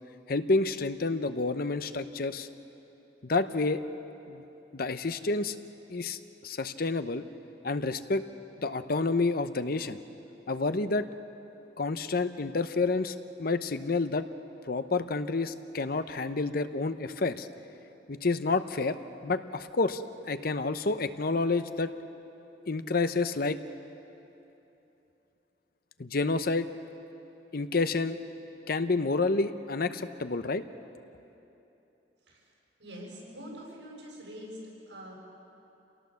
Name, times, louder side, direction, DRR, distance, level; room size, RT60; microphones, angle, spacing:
voice 1, 0.3-2.5 3.2-3.8 4.3-4.4 4.7-5.6 5.9-7.2 7.6-8.2 8.6-10.0 10.5-11.1 11.8-14.3 14.7-17.5 18.1-19.0 19.2-20.0 20.3-21.9 22.7-23.6 26.0-26.7 27.5-28.2 28.7-30.6, left 3 dB, 55° left, 11 dB, 0.8 m, -29 dB
voice 2, 32.8-35.1, equal, 85° right, -3 dB, 7.5 m, -44 dB
28.5 x 18.0 x 7.1 m, 3.0 s
head